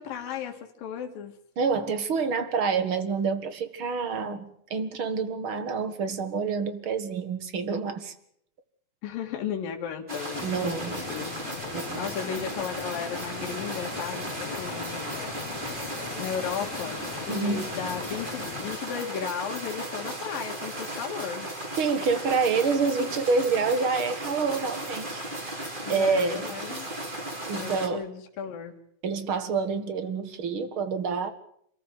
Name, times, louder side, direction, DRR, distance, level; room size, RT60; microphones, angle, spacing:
voice 1, 0.0-1.3 9.0-11.3 11.7-15.2 16.2-21.5 25.8-26.9 27.6-28.7, left 7 dB, 80° left, 2 dB, 3.6 m, -35 dB
voice 2, 1.6-8.1 10.4-11.0 11.7-12.0 17.3-17.7 21.8-25.2 25.9-26.5 27.5-28.1 29.0-31.3, right 5 dB, 45° right, 10 dB, 2.0 m, -27 dB
sound 1, 10.1-27.9, right 1 dB, 15° right, 2.7 m, -36 dB
sound 2, 10.3-18.8, left 9 dB, 65° left, 2.3 m, -40 dB
27.5 x 14.0 x 9.1 m, 0.69 s
omnidirectional pair, 4.0 m